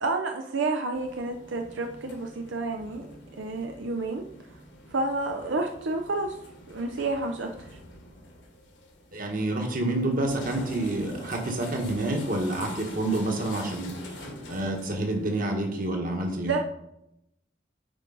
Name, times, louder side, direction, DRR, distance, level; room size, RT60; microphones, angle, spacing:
voice 1, 0.0-3.1 3.3-4.2 4.9-6.4 6.7-7.8 16.5-16.6, right 3 dB, 80° right, 4 dB, 0.6 m, -30 dB
sound 1, 0.9-15.9, left 1 dB, 65° left, 1.7 m, -45 dB
voice 2, 9.1-16.5, right 1 dB, 45° right, 2 dB, 1.4 m, -28 dB
9.1 x 4.6 x 4.0 m, 0.83 s
head